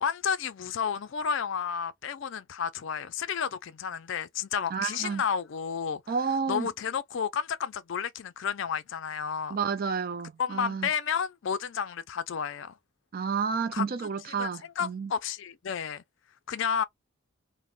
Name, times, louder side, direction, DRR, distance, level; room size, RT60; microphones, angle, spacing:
voice 1, 0.0-6.0 6.5-9.6 10.4-12.7 13.7-13.8 14.4-16.0 16.5-16.8, left 7 dB, 60° left, 0.4 m, -31 dB
voice 2, 4.7-5.2 6.1-6.7 9.5-10.9 13.1-15.1, right 5 dB, 45° right, 0.4 m, -30 dB
2.4 x 2.1 x 3.4 m
head